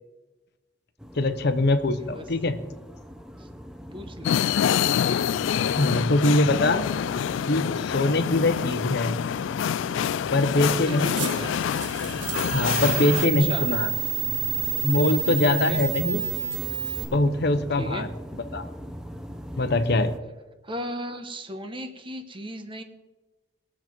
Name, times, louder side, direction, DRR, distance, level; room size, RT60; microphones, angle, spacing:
sound 1, 1.0-20.2, equal, 5° right, 0.6 m, -40 dB
voice 1, 1.1-2.6 5.6-6.9 7.5-9.1 10.3-11.5 12.5-13.9 14.8-16.2 17.0-18.1 18.5-18.6 19.6-20.1, left 2 dB, 60° left, 10 dB, 0.9 m, -23 dB
voice 2, 3.9-4.4 8.6-8.7 10.7-11.5 13.4-13.7 15.5-15.8 17.8-18.1 20.6-22.8, right 1 dB, 30° right, 7 dB, 1.1 m, -36 dB
sound 2, 4.2-13.3, left 8 dB, 85° left, 0.3 m, -26 dB
sound 3, 10.7-17.0, right 9 dB, 70° right, 1.7 m, -30 dB
20.5 x 7.4 x 4.5 m, 1.1 s
head